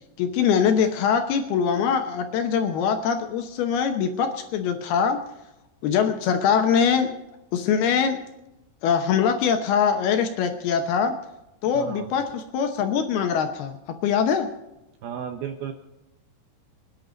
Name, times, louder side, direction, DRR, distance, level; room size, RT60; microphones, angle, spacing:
voice 1, 0.2-5.2 5.8-7.1 7.5-8.2 8.8-11.2 11.6-14.5, left 7 dB, 75° left, 6 dB, 2.6 m, -23 dB
voice 2, 11.7-12.1 15.0-15.7, right 8 dB, 75° right, 6 dB, 2.4 m, -33 dB
25.5 x 10.5 x 4.0 m, 0.95 s
omnidirectional pair, 5.3 m